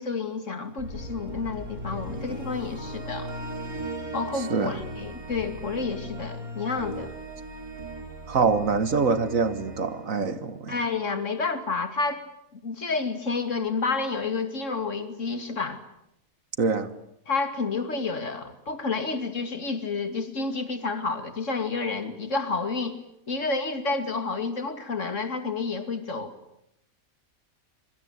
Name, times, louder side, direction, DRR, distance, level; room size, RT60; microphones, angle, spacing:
voice 1, 0.0-3.3 4.1-7.1 10.7-12.2 12.5-15.8 17.3-23.0 23.3-26.3, left 4 dB, 55° left, 2.8 m, -30 dB
sound 1, 0.8-11.0, right 1 dB, 90° right, 5.2 m, -38 dB
voice 2, 8.3-10.8 16.6-16.9, right 4 dB, 65° right, 1.9 m, -24 dB
25.5 x 23.5 x 8.2 m
omnidirectional pair, 1.5 m